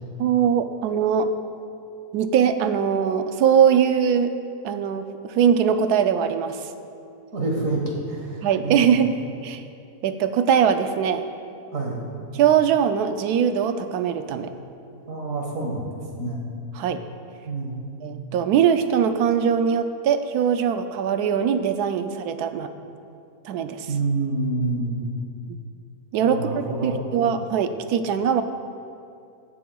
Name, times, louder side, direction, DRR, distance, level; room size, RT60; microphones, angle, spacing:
voice 1, 0.2-1.3 2.1-4.3 4.6-6.7 8.4-9.1 9.4-9.6 10.0-11.2 12.3-14.5 16.8-17.0 18.0-22.7 23.4-23.9 26.1-28.4, right 8 dB, 80° right, 9 dB, 1.1 m, -21 dB
voice 2, 7.3-9.0 11.7-12.1 15.1-15.9 16.2-16.4 17.5-17.8 23.9-25.0 26.2-27.0, right 2 dB, 55° right, -1 dB, 1.8 m, -27 dB
18.5 x 6.9 x 2.3 m, 2.5 s
omnidirectional pair, 1.7 m